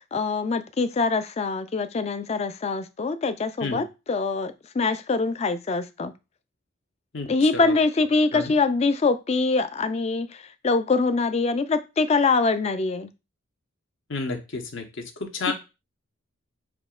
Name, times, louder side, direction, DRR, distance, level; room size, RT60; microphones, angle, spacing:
voice 1, 0.0-6.1 7.3-13.1 15.5-15.6, left 3 dB, 30° left, 0.3 m, -24 dB
voice 2, 7.1-7.8 8.3-8.5 14.1-15.5, left 3 dB, 60° left, 0.9 m, -31 dB
5.9 x 2.9 x 2.4 m
head